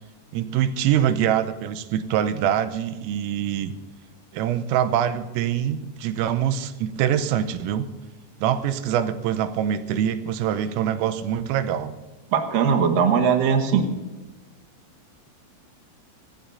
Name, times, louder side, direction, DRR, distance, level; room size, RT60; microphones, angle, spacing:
voice 1, 0.3-3.7 4.3-7.9 8.4-11.9, right 10 dB, 90° right, 11 dB, 3.5 m, -24 dB
voice 2, 12.3-13.9, right 6 dB, 65° right, 6 dB, 2.3 m, -20 dB
25.0 x 18.0 x 2.7 m, 1.2 s
omnidirectional pair, 5.8 m